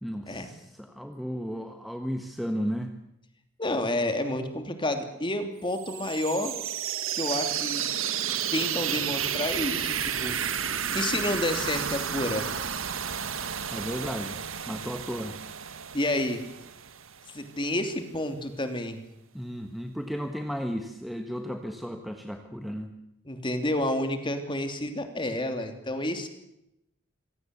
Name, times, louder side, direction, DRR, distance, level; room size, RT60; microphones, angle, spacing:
voice 1, 0.0-2.9 13.7-14.4 14.7-15.3 19.3-22.9, equal, ahead, 5 dB, 1.3 m, -34 dB
voice 2, 3.6-6.5 7.1-7.9 8.5-10.3 10.9-12.5 15.9-16.4 17.3-19.0 23.2-26.3, left 1 dB, 25° left, 7 dB, 3.0 m, -29 dB
sound 1, 5.7-17.4, right 8 dB, 80° right, 1.7 m, -32 dB
26.0 x 17.5 x 8.3 m, 0.85 s
head